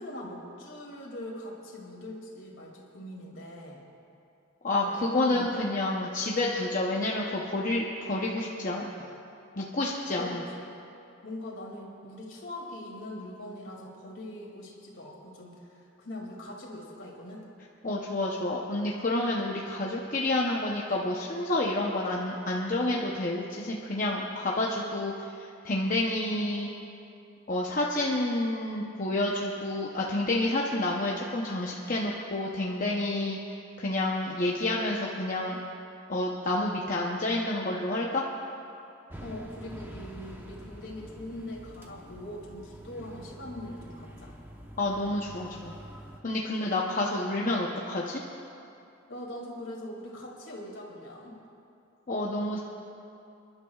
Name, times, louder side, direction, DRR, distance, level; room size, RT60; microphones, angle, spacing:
voice 1, 0.0-3.8 4.7-5.6 10.2-10.7 11.2-17.4 39.2-44.3 46.5-46.9 49.1-51.4, left 1 dB, 60° left, -2 dB, 2.5 m, -42 dB
voice 2, 4.6-8.9 9.6-10.4 17.8-26.7 27.5-35.6 36.1-38.3 44.8-45.8 46.2-48.2 52.1-52.6, left 2 dB, 40° left, -2 dB, 0.8 m, -29 dB
sound 1, 39.1-46.2, equal, 10° right, 0.9 m, -46 dB
29.0 x 11.5 x 2.4 m, 2.7 s
head